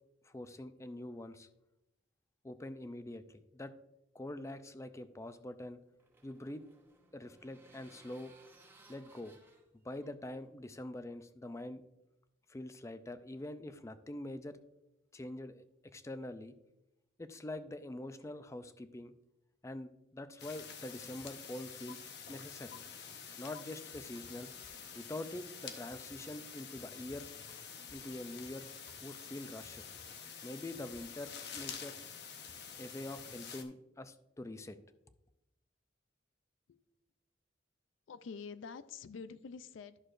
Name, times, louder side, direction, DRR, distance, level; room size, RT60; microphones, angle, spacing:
voice 1, 0.2-1.5 2.4-3.7 4.1-5.8 6.2-6.6 7.1-8.3 8.9-9.4 9.8-11.9 12.5-14.6 15.1-16.5 17.2-19.1 19.6-22.7 23.4-24.5 24.9-27.3 27.9-28.7 29.0-29.8 30.4-32.0 32.8-34.8, left 1 dB, 15° left, 11 dB, 0.4 m, -45 dB
sound 1, 5.4-11.0, right 2 dB, 10° right, 0.8 m, -63 dB
sound 2, 20.4-33.6, left 6 dB, 60° left, 0.8 m, -48 dB
voice 2, 38.1-40.0, left 5 dB, 80° left, 14 dB, 0.4 m, -47 dB
11.0 x 6.4 x 2.5 m, 0.90 s
head